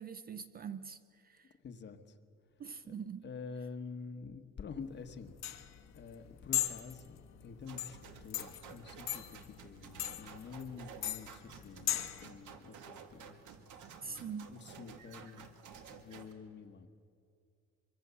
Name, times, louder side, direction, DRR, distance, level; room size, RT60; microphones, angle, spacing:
voice 1, 0.0-1.5 2.6-3.3 14.0-14.6, right 6 dB, 30° right, 0.5 m, -44 dB
voice 2, 1.6-2.2 2.8-2.9 3.2-13.4 14.0-15.5 15.9-16.9, left 5 dB, 35° left, 1.1 m, -48 dB
sound 1, 4.8-12.2, left 12 dB, 60° left, 1.2 m, -39 dB
sound 2, 7.6-16.3, right 7 dB, 75° right, 2.1 m, -53 dB
24.0 x 24.0 x 6.9 m
cardioid pair, 175°, 31 cm